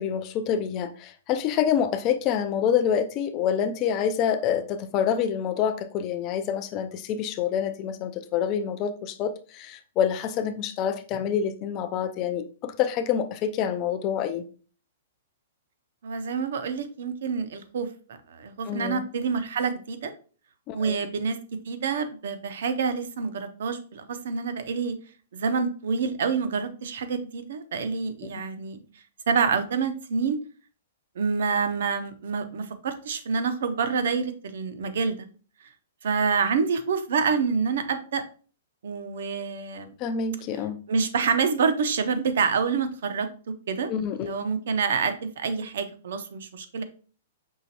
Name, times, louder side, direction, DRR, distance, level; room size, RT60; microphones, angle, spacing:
voice 1, 0.0-14.5 18.7-19.0 20.7-21.0 40.0-40.8 43.9-44.3, left 8 dB, 25° left, 0.3 m, -27 dB
voice 2, 16.0-17.9 18.3-20.1 20.7-21.4 21.7-25.0 25.3-28.8 29.3-30.4 31.2-35.3 36.0-38.2 38.8-39.9 40.9-43.3 43.7-43.9 44.2-46.8, right 5 dB, 65° right, 0.6 m, -27 dB
5.6 x 3.0 x 2.8 m
hypercardioid pair, 175°, 0 cm